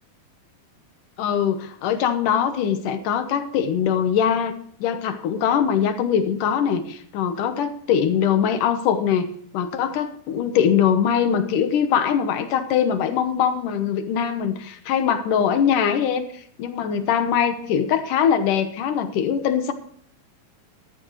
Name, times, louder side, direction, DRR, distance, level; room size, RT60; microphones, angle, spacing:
voice 1, 1.2-4.5 4.8-19.7, left 8 dB, 70° left, 9 dB, 2.3 m, -22 dB
14.5 x 13.0 x 3.1 m, 0.63 s
omnidirectional pair, 4.4 m